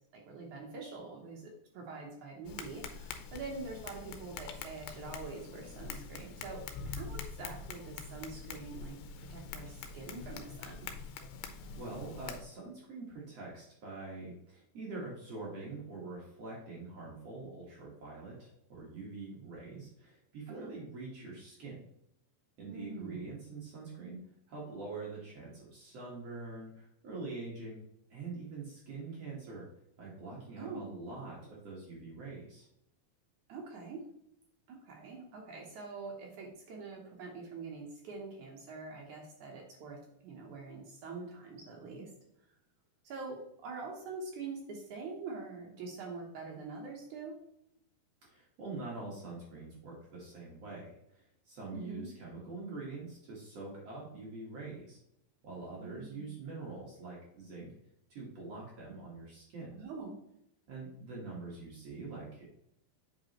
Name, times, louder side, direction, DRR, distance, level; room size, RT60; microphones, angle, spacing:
voice 1, 0.1-10.9 20.5-20.7 22.7-23.2 30.6-30.9 33.5-34.1 34.7-42.1 43.0-47.4 51.7-52.1 55.8-56.3 59.7-60.2, right 4 dB, 70° right, -1 dB, 1.9 m, -45 dB
Tap, 2.5-12.4, left 5 dB, 90° left, 2.9 m, -45 dB
voice 2, 11.4-21.8 22.6-24.2 24.5-27.8 28.1-29.7 30.0-32.7 48.2-55.0 55.4-57.7 58.1-59.8 60.7-62.4, right 3 dB, 50° right, -4 dB, 2.0 m, -44 dB
7.9 x 5.4 x 3.0 m, 0.79 s
omnidirectional pair, 4.8 m